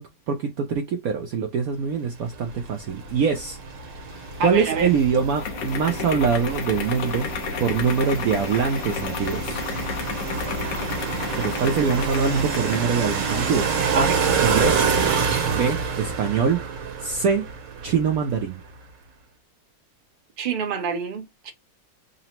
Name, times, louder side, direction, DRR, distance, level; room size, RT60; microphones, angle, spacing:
voice 1, 0.0-3.6 3.9-7.3 7.6-9.6 11.3-14.1 14.4-14.9 15.5-16.6 17.0-17.5 17.8-18.6, right 6 dB, 65° right, 0.9 m, -24 dB
sound 1, 2.3-18.5, right 5 dB, 80° right, 1.7 m, -27 dB
sound 2, 4.2-13.0, left 7 dB, 80° left, 1.4 m, -33 dB
voice 2, 4.4-4.9 13.9-14.2 20.4-21.5, right 5 dB, 40° right, 0.9 m, -27 dB
3.9 x 2.0 x 4.2 m
omnidirectional pair, 1.9 m